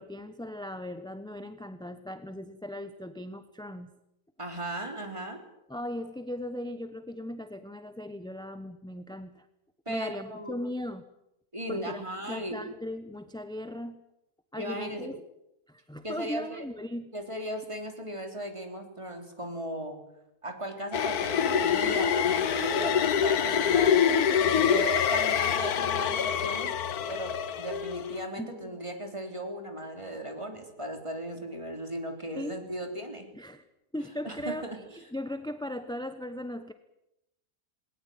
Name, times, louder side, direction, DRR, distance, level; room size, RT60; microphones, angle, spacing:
voice 1, 0.0-3.9 5.7-9.5 9.9-11.0 11.7-12.0 12.3-14.0 14.5-15.2 15.7-17.1 28.4-28.8 32.3-32.6 33.3-33.6 33.9-34.6 35.1-36.7, left 1 dB, 5° left, 10 dB, 0.7 m, -38 dB
voice 2, 4.4-5.4 9.9-10.7 11.5-12.7 14.5-15.1 16.0-16.7 17.1-20.0 20.4-26.7 27.1-33.3 34.2-34.8, right 1 dB, 20° right, 4 dB, 3.5 m, -37 dB
sound 1, 20.9-28.2, left 8 dB, 80° left, 1.6 m, -25 dB
20.0 x 19.0 x 9.2 m, 0.87 s
omnidirectional pair, 1.6 m